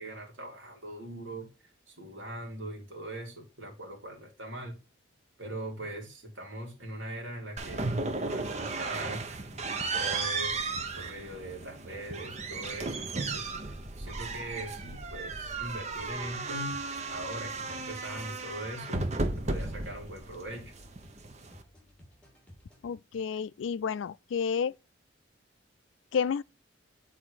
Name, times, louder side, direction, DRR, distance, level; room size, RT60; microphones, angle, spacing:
voice 1, 0.0-1.5 1.9-4.7 5.4-8.0 8.2-9.2 9.9-10.7 11.0-16.8 17.1-19.1 19.4-20.7, right 1 dB, 80° right, 2.8 m, -41 dB
sound 1, 7.6-21.6, right 3 dB, 35° right, 0.7 m, -35 dB
sound 2, 8.0-22.9, equal, 5° left, 2.5 m, -56 dB
voice 2, 22.8-24.7 26.1-26.4, left 6 dB, 70° left, 0.3 m, -30 dB
8.1 x 4.2 x 4.8 m
head